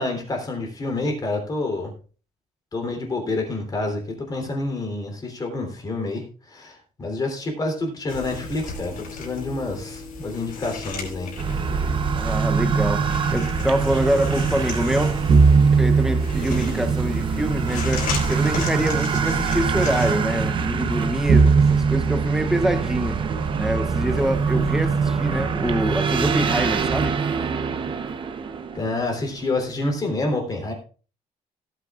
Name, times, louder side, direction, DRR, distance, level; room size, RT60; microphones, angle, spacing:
voice 1, 0.0-1.9 2.7-11.3 28.7-30.7, left 2 dB, 25° left, 3.4 m, -28 dB
sound 1, 8.1-20.1, left 4 dB, 70° left, 5.3 m, -35 dB
sound 2, 11.4-29.3, right 5 dB, 35° right, 0.9 m, -22 dB
voice 2, 12.2-15.2 15.8-23.3 23.6-27.2, right 1 dB, 5° right, 0.7 m, -25 dB
17.0 x 9.2 x 2.5 m
cardioid pair, 150°, 15 cm